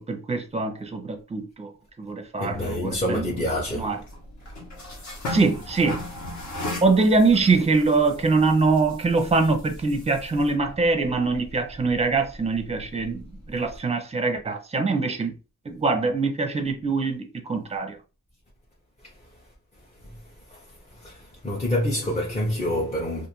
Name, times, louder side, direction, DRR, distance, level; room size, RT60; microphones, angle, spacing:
voice 1, 0.0-1.7 2.0-3.3 3.7-4.0 5.3-6.0 6.8-13.2 13.5-15.3 15.7-18.0, right 3 dB, 20° right, 0.6 m, -23 dB
voice 2, 2.4-3.9 20.5-20.6 21.0-23.3, left 1 dB, 20° left, 0.6 m, -27 dB
sound 1, 2.5-13.8, left 1 dB, 55° left, 1.0 m, -38 dB
2.5 x 2.5 x 3.0 m
wide cardioid pair, 110°, 33 cm